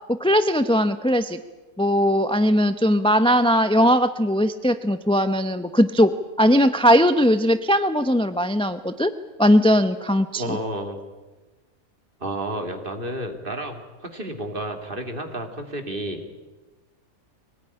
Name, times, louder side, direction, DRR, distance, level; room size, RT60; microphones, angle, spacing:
voice 1, 0.1-1.4 1.8-9.1 9.4-10.6, equal, 5° left, 11 dB, 0.5 m, -19 dB
voice 2, 10.4-11.0 12.2-16.2, right 1 dB, 35° right, 5 dB, 2.8 m, -31 dB
24.0 x 18.5 x 10.0 m, 1.2 s
omnidirectional pair, 1.6 m